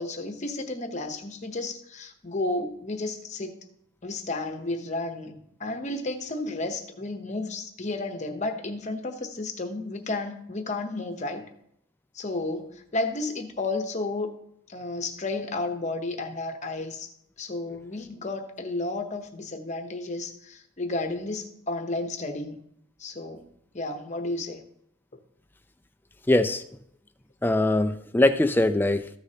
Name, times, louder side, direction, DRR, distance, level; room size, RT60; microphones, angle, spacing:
voice 1, 0.0-3.5 4.0-11.5 12.1-14.3 14.7-17.1 17.4-22.6 23.0-23.4 23.7-24.6, left 2 dB, 35° left, 6 dB, 0.9 m, -32 dB
voice 2, 26.3-26.6 27.4-29.1, left 1 dB, 10° left, 9 dB, 0.4 m, -22 dB
14.0 x 6.5 x 2.8 m, 0.72 s
head